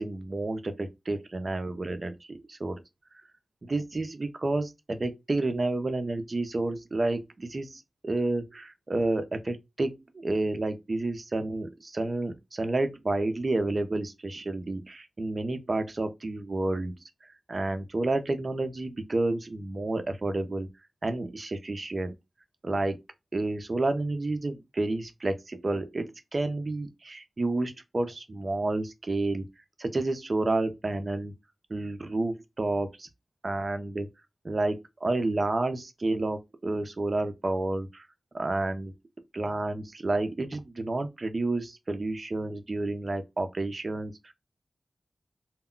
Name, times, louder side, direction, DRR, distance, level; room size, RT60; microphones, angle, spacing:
voice 1, 0.0-2.8 3.6-17.0 17.5-20.7 21.0-22.2 22.6-23.0 23.3-29.4 29.8-31.3 31.7-33.1 33.4-34.1 34.4-38.1 38.3-38.9 39.3-44.3, right 2 dB, 40° right, 0.5 m, -30 dB
2.2 x 2.1 x 3.7 m
wide cardioid pair, 90°, 0 cm